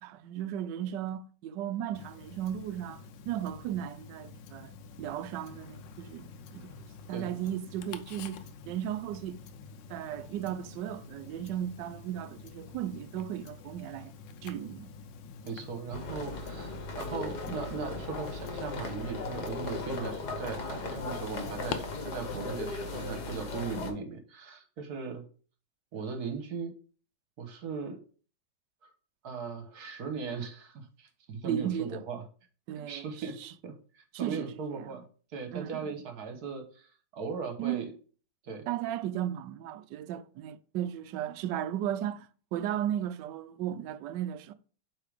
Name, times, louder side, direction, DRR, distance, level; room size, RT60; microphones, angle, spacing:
voice 1, 0.0-4.7 5.0-6.7 7.1-9.4 9.9-14.1 14.4-14.9 31.4-32.0 32.7-33.1 33.4-33.5 34.1-34.9 35.5-36.0 37.6-37.9 38.7-44.5, right 11 dB, 80° right, 1.2 m, -35 dB
Tick-tock, 1.9-21.7, left 6 dB, 85° left, 1.4 m, -47 dB
voice 2, 15.4-25.2 25.9-26.7 27.4-28.0 28.8-28.9 29.2-32.2 32.9-35.0 35.3-37.9 38.4-38.7, right 5 dB, 60° right, 1.7 m, -38 dB
sound 1, 15.9-23.9, left 3 dB, 65° left, 1.7 m, -37 dB
8.3 x 3.8 x 5.0 m
omnidirectional pair, 1.9 m